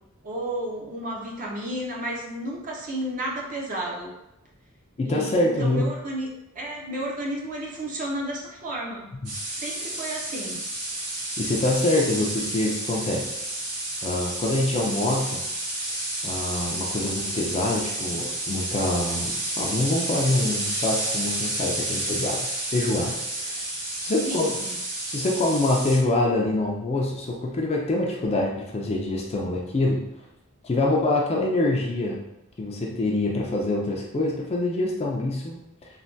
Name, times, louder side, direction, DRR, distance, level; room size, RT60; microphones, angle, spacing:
voice 1, 0.2-4.1 5.0-6.3 6.6-9.1 9.5-10.6 24.2-24.8, right 1 dB, 35° right, -2 dB, 0.5 m, -32 dB
voice 2, 5.0-5.9 9.2-9.3 11.4-13.3 14.0-15.4 16.2-22.4 22.7-23.6 24.0-24.6 25.1-30.0 30.6-32.2 32.6-35.6, left 2 dB, 30° left, -1 dB, 0.3 m, -25 dB
sound 1, 9.2-26.0, right 1 dB, 90° right, 0.9 m, -30 dB
3.2 x 2.2 x 2.6 m, 0.87 s
head